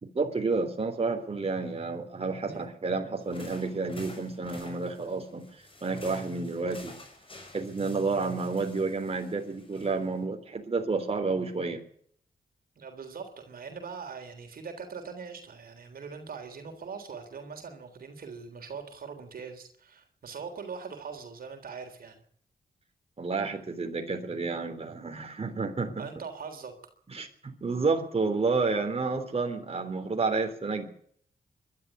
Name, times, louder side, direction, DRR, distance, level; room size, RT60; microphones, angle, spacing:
voice 1, 0.0-5.5 5.8-6.9 7.5-11.8 23.2-26.1 27.1-30.9, right 4 dB, 40° right, 4 dB, 3.4 m, -30 dB
sound 1, 3.2-10.2, left 2 dB, 35° left, 5.9 m, -50 dB
voice 2, 12.8-22.2 26.0-26.8, right 5 dB, 75° right, 5 dB, 3.5 m, -41 dB
21.5 x 12.5 x 9.8 m, 0.63 s
cardioid pair, 60°, 15 cm